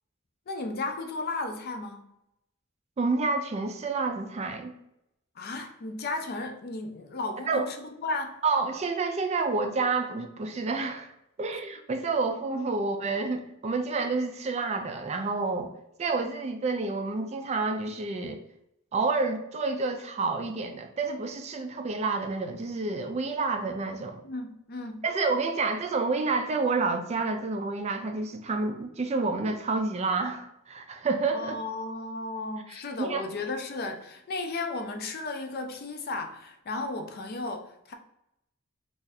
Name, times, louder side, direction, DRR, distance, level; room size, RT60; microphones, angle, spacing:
voice 1, 0.5-2.0 5.4-8.4 24.2-25.0 31.3-37.9, left 2 dB, 45° left, 5 dB, 0.5 m, -34 dB
voice 2, 3.0-4.7 7.5-7.7 8.4-11.1 11.4-15.7 16.0-18.4 18.9-24.2 25.0-31.5 33.0-33.2, right 3 dB, 30° right, 6 dB, 0.3 m, -29 dB
2.7 x 2.4 x 3.9 m, 0.82 s
head